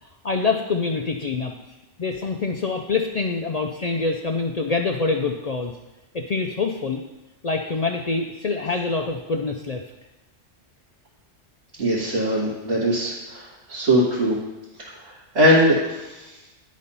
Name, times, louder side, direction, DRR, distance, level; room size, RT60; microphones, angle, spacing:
voice 1, 0.0-1.5 2.0-5.7 6.1-7.0 7.4-9.8, left 4 dB, 55° left, 2 dB, 0.4 m, -25 dB
voice 2, 11.8-14.4 14.8-16.3, equal, 65° right, -8 dB, 2.0 m, -21 dB
9.9 x 4.2 x 5.4 m, 1.1 s
omnidirectional pair, 1.2 m